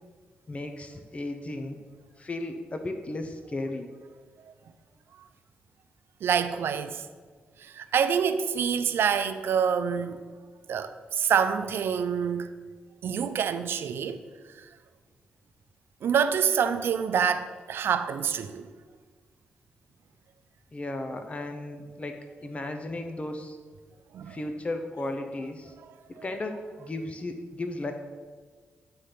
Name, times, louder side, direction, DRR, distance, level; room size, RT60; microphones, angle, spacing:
voice 1, 0.5-1.8 2.2-3.9 20.7-23.6 24.3-25.7 26.2-27.9, left 2 dB, 35° left, 0.7 m, -35 dB
voice 2, 6.2-7.1 7.6-10.2 10.7-12.5 13.0-14.2 14.6-14.7 16.0-18.7 24.1-24.4 26.2-26.3, right 7 dB, 75° right, 0.5 m, -26 dB
9.4 x 3.4 x 5.8 m
cardioid pair, 70°, 4 cm